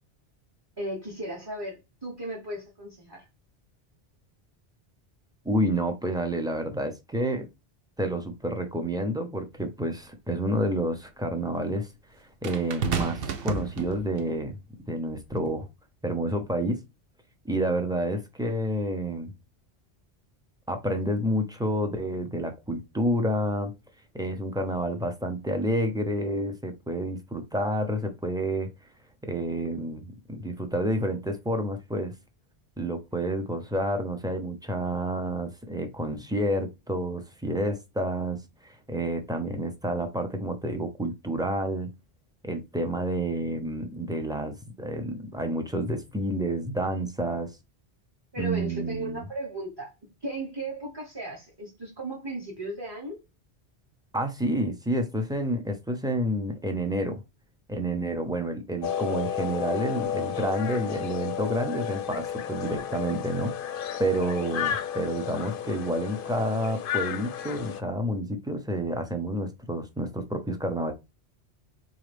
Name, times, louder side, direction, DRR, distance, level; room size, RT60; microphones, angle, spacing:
voice 1, 0.8-3.2 48.3-49.9 50.2-53.2, right 2 dB, 25° right, 1.2 m, -36 dB
voice 2, 5.4-7.5 8.0-11.9 12.2-14.5 14.9-15.7 16.0-16.8 17.4-19.3 20.7-23.7 24.1-28.7 29.2-32.1 32.8-41.9 42.4-47.6 48.4-49.2 54.1-57.2 57.7-63.5 64.0-70.9, right 1 dB, 5° right, 0.6 m, -29 dB
sound 1, 9.5-9.6 12.4-14.3 15.2-15.5, right 5 dB, 65° right, 0.9 m, -31 dB
sound 2, 58.8-67.8, left 9 dB, 60° left, 0.7 m, -32 dB
3.9 x 3.7 x 3.4 m
omnidirectional pair, 1.1 m